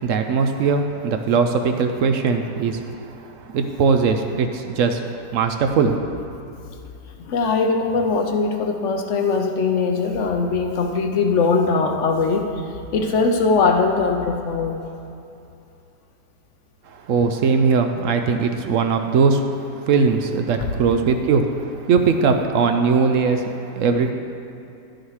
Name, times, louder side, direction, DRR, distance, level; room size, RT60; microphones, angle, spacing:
voice 1, 0.0-2.8 3.5-5.0 5.3-6.0 17.1-19.4 19.8-24.1, right 5 dB, 70° right, 6 dB, 0.7 m, -20 dB
voice 2, 7.2-12.5 12.9-14.8, left 4 dB, 65° left, 4 dB, 0.8 m, -20 dB
12.0 x 6.4 x 4.8 m, 2.7 s
omnidirectional pair, 1.8 m